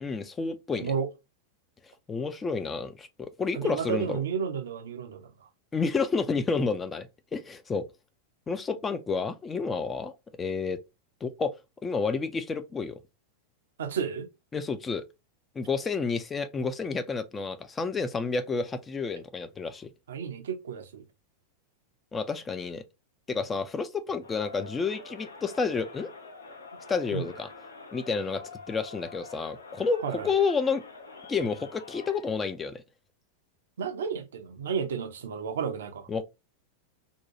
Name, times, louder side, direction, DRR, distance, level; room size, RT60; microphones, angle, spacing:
voice 1, 0.0-0.9 2.1-4.2 5.7-7.9 8.5-10.8 11.2-11.5 11.8-13.0 14.5-15.0 15.6-19.9 22.1-22.8 23.3-26.1 26.9-27.5 27.9-28.4 28.7-30.8 31.3-32.8 36.1-36.2, left 4 dB, 15° left, 0.4 m, -30 dB
voice 2, 3.5-5.3 13.8-14.3 20.1-21.0 27.1-27.3 30.0-30.3 33.8-36.1, right 6 dB, 65° right, 0.5 m, -32 dB
Crowd, 24.2-32.3, left 4 dB, 70° left, 0.6 m, -46 dB
2.7 x 2.2 x 2.7 m
figure-of-eight pair, 90°, 0 cm